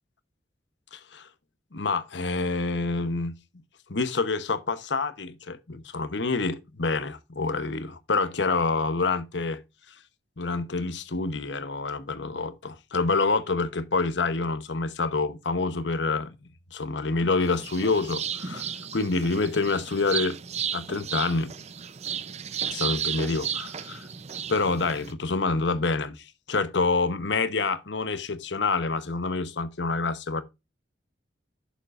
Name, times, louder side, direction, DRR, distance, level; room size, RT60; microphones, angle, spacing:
voice 1, 0.9-1.3 1.7-3.3 3.9-9.6 10.4-16.3 16.7-20.4 20.7-21.5 22.7-24.1 24.5-30.4, left 3 dB, 70° left, 1.0 m, -27 dB
sound 1, 17.4-25.1, right 8 dB, 35° right, 0.6 m, -34 dB
11.0 x 7.2 x 2.5 m
head